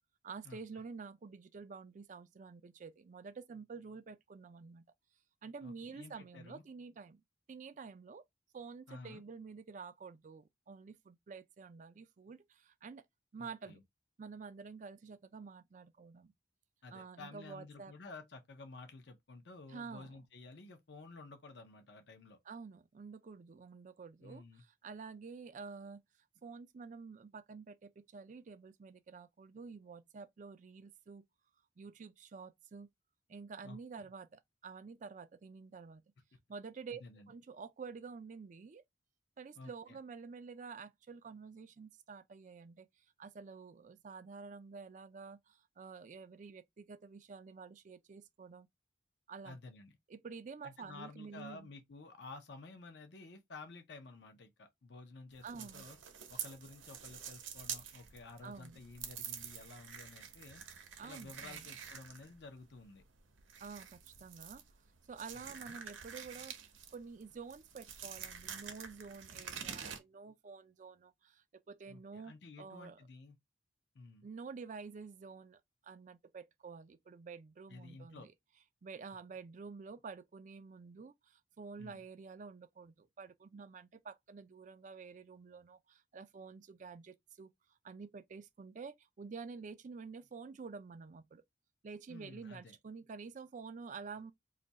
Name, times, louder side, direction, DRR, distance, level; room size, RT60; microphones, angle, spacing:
voice 1, 0.2-4.8 5.4-7.2 7.5-8.2 8.5-13.1 13.3-13.8 14.2-16.3 16.9-17.9 19.7-20.1 22.5-26.0 26.4-31.2 31.8-32.9 33.3-36.0 36.5-37.0 37.3-38.8 39.4-48.7 49.3-49.6 50.1-51.7 55.4-55.9 58.4-58.8 61.0-61.7 63.6-64.6 65.0-66.6 66.9-73.0 74.2-78.3 78.8-91.4 91.8-94.3, right 5 dB, 40° right, 0.3 m, -49 dB
voice 2, 5.6-6.6 8.9-9.2 13.4-13.8 16.8-22.4 24.2-24.6 33.6-34.1 37.0-37.3 39.6-40.0 49.4-50.0 50.6-56.0 56.3-60.6 61.0-63.0 65.3-65.7 71.9-73.4 73.9-74.3 77.7-78.3 81.8-82.0 92.1-92.8, left 3 dB, 60° left, 0.6 m, -52 dB
sound 1, 55.3-70.0, right 8 dB, 85° right, 0.7 m, -47 dB
2.6 x 2.4 x 4.0 m
head